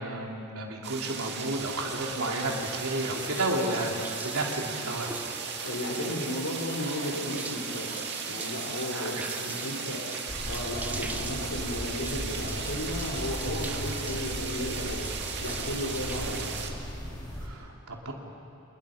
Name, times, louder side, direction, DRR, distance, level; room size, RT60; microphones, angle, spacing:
voice 1, 0.0-5.1 8.9-9.5 17.4-18.1, right 1 dB, 75° right, -1 dB, 3.6 m, -32 dB
sound 1, 0.8-16.7, right 5 dB, 50° right, 2.3 m, -37 dB
sound 2, 2.4-16.6, right 2 dB, 10° right, 0.9 m, -42 dB
voice 2, 5.6-7.9 8.3-10.0 10.5-16.5, left 1 dB, 85° left, -3 dB, 3.6 m, -34 dB
sound 3, 10.3-17.5, equal, 20° left, 4.2 m, -38 dB
30.0 x 28.5 x 5.3 m, 2.7 s
head